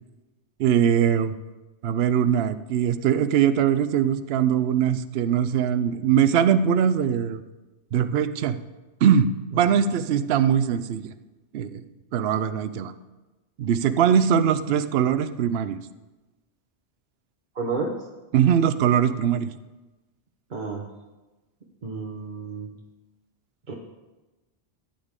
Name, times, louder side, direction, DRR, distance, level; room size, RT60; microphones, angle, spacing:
voice 1, 0.6-1.3 1.8-7.4 7.9-8.6 9.0-11.1 11.5-11.8 12.1-12.9 13.6-15.8 18.3-19.5, right 8 dB, 65° right, 12 dB, 0.8 m, -21 dB
voice 2, 17.5-17.9 20.5-20.8 21.8-22.7 23.7-23.8, right 4 dB, 45° right, -1 dB, 1.1 m, -30 dB
14.5 x 8.8 x 3.7 m, 1.1 s
omnidirectional pair, 1.2 m